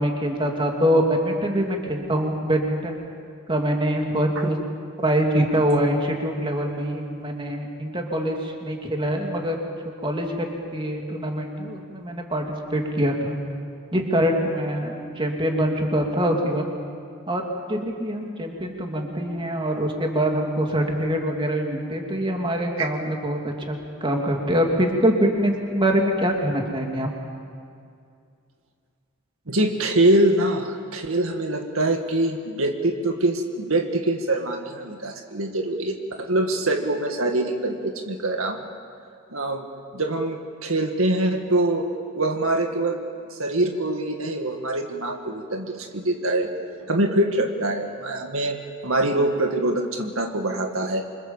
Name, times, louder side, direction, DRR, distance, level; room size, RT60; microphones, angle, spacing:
voice 1, 0.0-3.0 3.5-4.6 5.0-9.6 10.0-13.4 13.9-16.6 17.3-17.4 17.7-27.1, equal, 25° right, 1 dB, 3.0 m, -24 dB
voice 2, 29.5-38.6 39.3-39.7 39.9-41.9 42.1-43.0 43.3-46.5 46.9-51.1, right 1 dB, 75° right, 4 dB, 2.1 m, -24 dB
27.5 x 25.5 x 7.4 m, 2.3 s
head